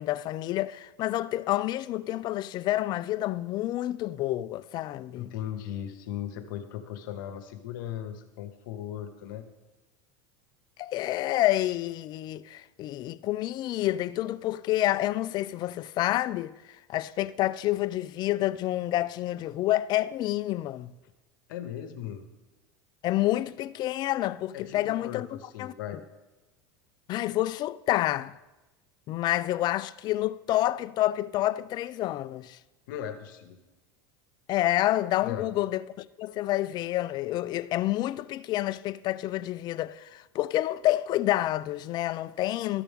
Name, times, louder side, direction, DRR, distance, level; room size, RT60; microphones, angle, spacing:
voice 1, 0.0-5.3 10.8-16.5 16.9-20.9 23.0-25.3 25.6-25.7 27.1-28.4 29.1-32.6 34.5-42.8, left 15 dB, 40° left, 0.3 m, -28 dB
voice 2, 5.1-9.5 21.5-22.3 24.5-26.0 32.9-33.6 35.2-35.5, left 10 dB, 75° left, 1.0 m, -38 dB
13.5 x 6.1 x 3.5 m
supercardioid pair, 115°, 11 cm